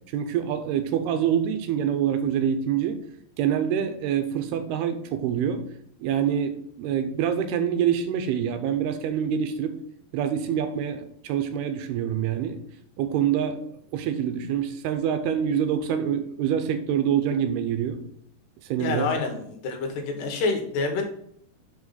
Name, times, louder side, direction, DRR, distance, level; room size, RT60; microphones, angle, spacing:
voice 1, 0.1-3.0 3.4-5.6 6.0-9.8 10.1-12.6 13.0-13.6 13.9-18.0 18.6-19.1, right 8 dB, 80° right, 8 dB, 2.6 m, -26 dB
voice 2, 18.8-21.0, left 3 dB, 90° left, 4 dB, 3.3 m, -27 dB
6.6 x 5.1 x 4.0 m, 0.69 s
omnidirectional pair, 4.7 m